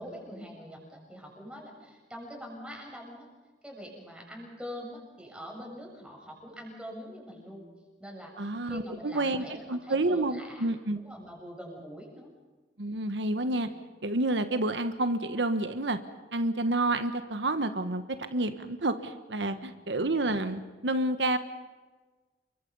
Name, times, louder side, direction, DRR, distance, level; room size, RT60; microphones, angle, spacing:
voice 1, 0.0-3.3 3.6-7.6 8.0-10.7 10.9-12.3 13.4-13.6 19.4-19.7, equal, 5° right, -1 dB, 7.2 m, -44 dB
voice 2, 8.4-11.0 12.8-13.7 14.0-16.0 16.3-18.0 18.3-21.4, right 2 dB, 85° right, 9 dB, 1.3 m, -29 dB
28.5 x 23.5 x 5.5 m, 1.3 s
head